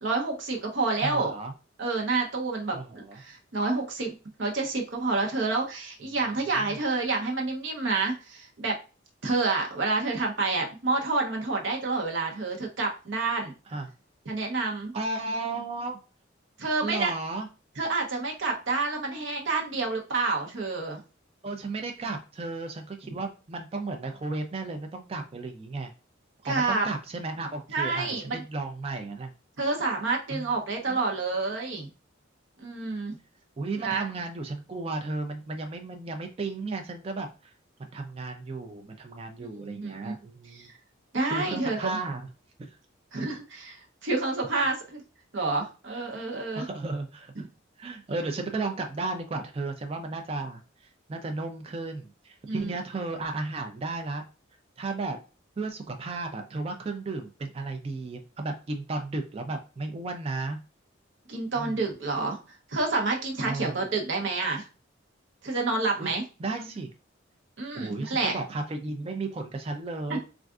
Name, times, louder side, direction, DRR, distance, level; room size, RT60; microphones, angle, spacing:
voice 1, 0.0-1.3 1.8-4.1 4.4-8.8 9.2-13.5 14.3-14.9 16.6-17.1 17.8-21.0 26.4-26.9 27.7-28.4 29.6-31.9 32.6-33.2 33.8-34.0 39.4-40.1 40.5-40.8 41.1-41.9 43.1-45.0 45.3-46.7 52.5-52.7 61.3-62.4 62.7-64.7 65.4-66.2 67.6-68.3 70.1-70.2, right 3 dB, 70° right, 1 dB, 0.8 m, -28 dB
voice 2, 1.0-1.5 2.7-3.2 6.6-6.8 13.7-13.9 14.9-16.0 16.8-17.5 21.4-25.9 26.4-29.3 30.3-30.4 30.9-31.0 33.6-37.5 37.8-40.7 41.3-42.3 42.6-42.8 46.5-47.3 47.8-54.2 54.8-55.2 55.6-60.6 61.6-61.8 63.4-63.8 66.0-66.1 66.4-66.9 67.7-70.2, right 3 dB, 30° right, 5 dB, 0.3 m, -34 dB
3.5 x 2.4 x 2.3 m, 0.33 s
head